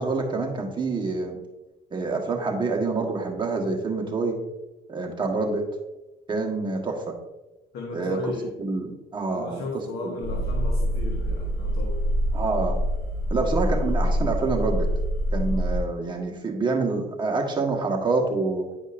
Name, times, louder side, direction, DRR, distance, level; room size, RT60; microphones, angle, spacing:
voice 1, 0.0-1.4 1.9-4.4 4.9-5.6 6.3-7.0 7.9-8.2 8.6-9.7 10.0-10.4 12.3-12.8 13.3-14.9 15.3-18.7, right 3 dB, 25° right, 1 dB, 1.4 m, -27 dB
voice 2, 7.7-8.5 9.3-12.0, left 3 dB, 70° left, 0 dB, 1.2 m, -35 dB
sound 1, 10.2-15.8, equal, 15° left, 2.3 m, -25 dB
9.8 x 5.2 x 2.5 m, 1.0 s
cardioid pair, 110°, 17 cm